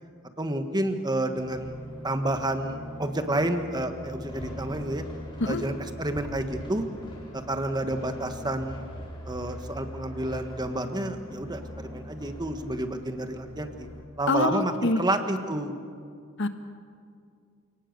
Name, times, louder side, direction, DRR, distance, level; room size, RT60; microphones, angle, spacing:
voice 1, 0.4-1.7 2.0-5.0 5.4-6.8 7.3-8.8 9.2-13.9 14.2-15.7, right 1 dB, 20° right, 7 dB, 1.5 m, -30 dB
sound 1, 1.4-14.0, equal, 25° left, 4.2 m, -41 dB
voice 2, 14.3-15.0 16.4-16.5, left 2 dB, 60° left, 8 dB, 1.5 m, -25 dB
28.5 x 18.5 x 6.8 m, 2.3 s
head